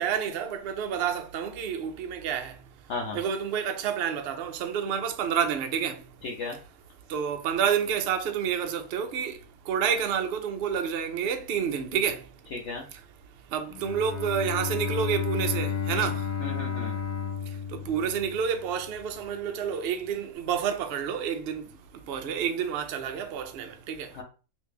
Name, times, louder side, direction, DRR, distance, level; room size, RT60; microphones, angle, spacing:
voice 1, 0.0-2.6 3.1-6.0 7.1-9.4 9.7-12.2 13.5-16.3 17.7-21.7 22.1-24.1, right 7 dB, 90° right, 0.5 m, -29 dB
voice 2, 6.2-6.6 12.5-12.8 15.9-16.0 16.4-16.9 24.1-24.2, left 3 dB, 65° left, 0.7 m, -34 dB
Bowed string instrument, 13.7-18.7, left 7 dB, 80° left, 1.1 m, -32 dB
3.0 x 2.5 x 3.4 m
omnidirectional pair, 1.6 m